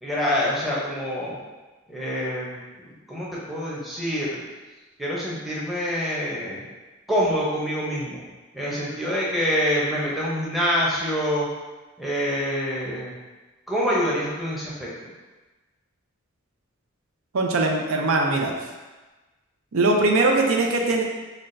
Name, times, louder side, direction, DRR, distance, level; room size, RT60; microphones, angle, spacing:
voice 1, 0.0-1.4 1.9-2.6 2.8-4.4 5.0-6.6 7.1-8.2 8.5-11.5 12.0-13.1 13.7-15.1, equal, ahead, -7 dB, 0.7 m, -26 dB
voice 2, 17.3-18.5 19.7-21.0, right 2 dB, 85° right, 1 dB, 0.5 m, -21 dB
5.7 x 2.2 x 2.6 m, 1.2 s
head